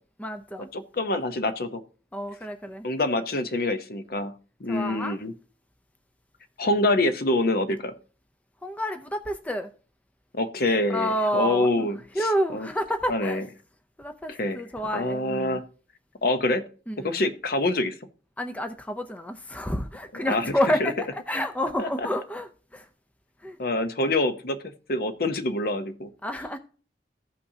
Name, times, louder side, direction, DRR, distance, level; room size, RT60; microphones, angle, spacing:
voice 1, 0.2-0.7 2.1-2.9 4.7-5.2 8.6-9.7 10.9-11.9 12.1-13.4 14.0-15.6 16.9-17.2 18.4-22.9 23.4-23.6 26.2-26.6, equal, 10° left, 0.5 m, -29 dB
voice 2, 0.7-1.8 2.8-4.3 4.6-5.3 6.6-7.9 10.3-12.0 12.5-12.7 13.1-13.5 14.3-14.6 14.9-15.6 16.2-16.6 17.0-17.9 20.2-20.5 20.8-20.9 21.8-21.9 23.6-26.1, left 2 dB, 55° left, 0.8 m, -26 dB
15.0 x 5.6 x 2.8 m
head